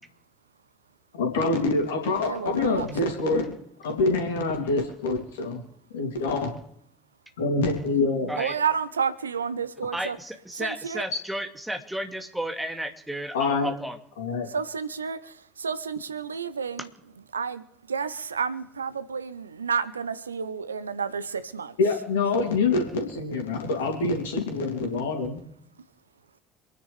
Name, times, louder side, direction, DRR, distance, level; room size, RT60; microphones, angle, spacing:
voice 1, 1.1-5.6 5.9-6.5 7.4-8.3 13.3-13.7 14.2-14.5 21.8-25.4, left 3 dB, 70° left, 2 dB, 2.9 m, -26 dB
voice 2, 2.3-2.9 8.2-10.2 10.5-11.0 14.5-16.9 17.3-21.7, right 6 dB, 80° right, 14 dB, 0.7 m, -30 dB
voice 3, 9.9-14.0, right 1 dB, 5° right, 5 dB, 2.1 m, -33 dB
26.5 x 10.0 x 3.5 m, 0.71 s
figure-of-eight pair, 60°, 0 cm